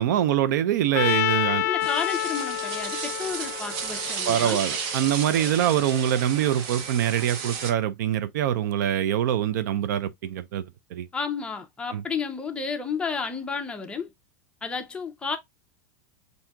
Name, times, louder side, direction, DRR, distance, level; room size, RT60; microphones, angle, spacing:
voice 1, 0.0-1.7 4.3-11.1 11.9-12.0, right 10 dB, 75° right, 0.4 m, -24 dB
Trumpet, 0.9-5.0, left 15 dB, 65° left, 0.5 m, -28 dB
voice 2, 1.6-4.6 11.1-14.1 14.6-15.4, left 5 dB, 10° left, 0.5 m, -32 dB
sound 1, 1.8-7.7, right 6 dB, 45° right, 0.8 m, -33 dB
5.8 x 2.7 x 2.2 m
supercardioid pair, 155°, 10 cm